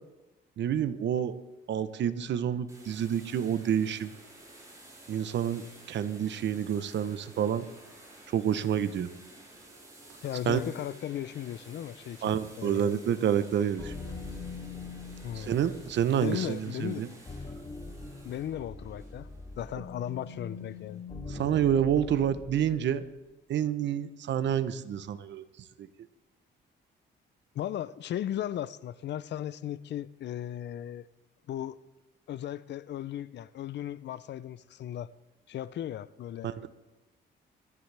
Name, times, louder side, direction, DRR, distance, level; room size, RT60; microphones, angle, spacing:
voice 1, 0.6-1.4 1.7-4.1 5.1-7.7 8.3-9.1 10.5-10.6 12.2-13.9 15.3-17.1 21.3-23.0 23.5-25.5 25.8-25.9 36.4-36.7, right 9 dB, 65° right, 0.9 m, -28 dB
sound 1, 2.7-21.0, right 1 dB, 15° right, 6.0 m, -53 dB
voice 2, 10.2-13.0 15.2-15.6 16.2-17.0 18.2-19.3 19.6-21.0 27.5-31.1 31.5-31.8 32.3-35.1 35.5-36.7, left 11 dB, 60° left, 0.6 m, -36 dB
sound 2, 13.8-23.0, left 3 dB, 25° left, 1.9 m, -43 dB
25.5 x 11.0 x 3.4 m
cardioid pair, 90°, 20 cm